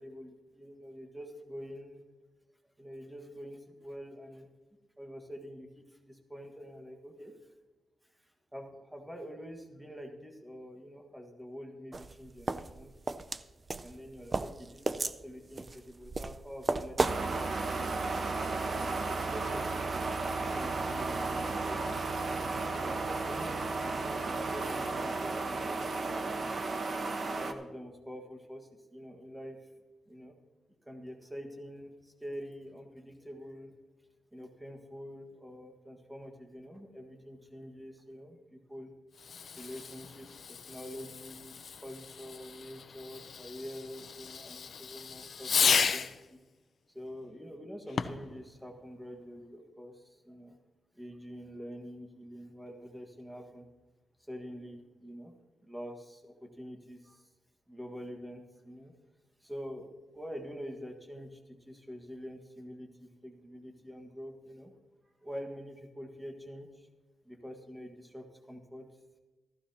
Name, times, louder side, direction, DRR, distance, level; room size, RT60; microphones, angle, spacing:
voice 1, 0.0-2.0 2.8-4.5 5.0-7.4 8.2-12.9 13.8-17.4 17.7-18.1 18.7-19.8 20.5-22.0 22.7-23.6 24.0-26.7 27.3-29.7 30.1-30.3 30.8-33.8 34.3-38.9 39.6-46.4 46.9-50.5 50.9-53.7 54.2-55.3 55.6-57.3 57.7-58.9 59.4-64.7 65.0-66.9 67.2-68.9, equal, 5° right, 3 dB, 1.5 m, -46 dB
sound 1, 11.9-17.2, right 3 dB, 25° right, 0.5 m, -34 dB
sound 2, 17.0-27.5, right 3 dB, 45° right, 1.0 m, -34 dB
Fireworks, 39.1-46.2 47.9-48.3, left 6 dB, 60° left, 0.7 m, -34 dB
15.0 x 14.5 x 2.9 m, 1.2 s
wide cardioid pair, 120°, 0 cm